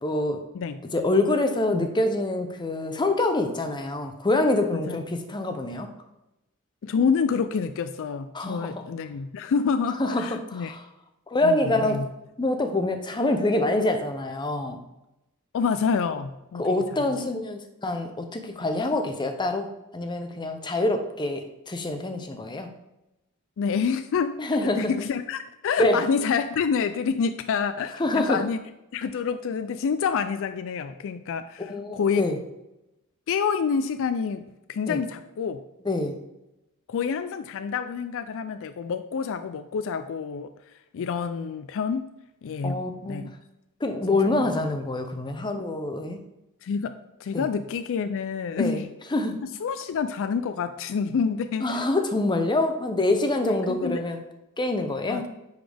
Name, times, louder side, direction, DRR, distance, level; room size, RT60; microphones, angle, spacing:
voice 1, 0.0-0.4 0.9-5.9 8.3-8.8 10.0-10.8 11.3-12.0 12.4-14.8 16.6-19.7 19.9-21.4 21.7-22.7 24.4-24.9 25.8-26.0 28.0-28.4 31.7-32.4 34.9-35.0 35.9-36.2 42.6-43.2 43.8-46.2 47.3-47.5 48.6-48.8 49.1-49.4 51.6-54.2 54.6-55.3, left 2 dB, 20° left, 6 dB, 0.6 m, -25 dB
voice 2, 4.7-5.0 6.8-10.8 11.4-12.1 15.5-16.8 23.6-24.3 24.6-28.6 28.9-32.3 33.3-34.4 34.7-35.6 36.9-40.5 40.9-42.1 42.4-43.3 44.1-44.5 46.6-46.9 47.2-48.9 49.4-51.8 53.5-54.0 55.1-55.3, left 6 dB, 65° left, 10 dB, 0.4 m, -28 dB
9.8 x 4.0 x 3.4 m, 0.91 s
head